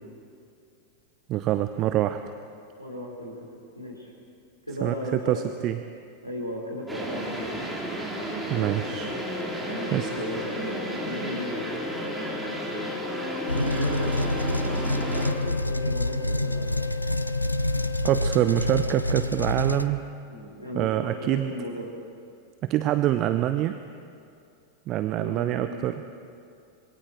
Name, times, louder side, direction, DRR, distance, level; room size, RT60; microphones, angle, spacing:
voice 1, 1.3-2.2 4.8-5.8 8.5-9.2 9.9-10.1 18.0-20.0 20.7-21.5 22.7-23.8 24.9-25.9, right 13 dB, 35° right, 10 dB, 0.7 m, -25 dB
voice 2, 2.8-3.3 3.8-4.1 4.7-5.5 6.2-7.7 9.6-11.8 13.5-16.7 20.3-21.9 25.2-25.8, equal, 90° right, -2 dB, 4.6 m, -36 dB
sound 1, 6.9-15.3, right 1 dB, 5° right, 3.9 m, -33 dB
Organ, 8.5-19.6, left 11 dB, 60° left, 1.8 m, -39 dB
sound 2, 13.5-19.9, left 1 dB, 85° left, 0.6 m, -27 dB
26.0 x 22.0 x 4.5 m, 2.5 s
figure-of-eight pair, 90°, 0 cm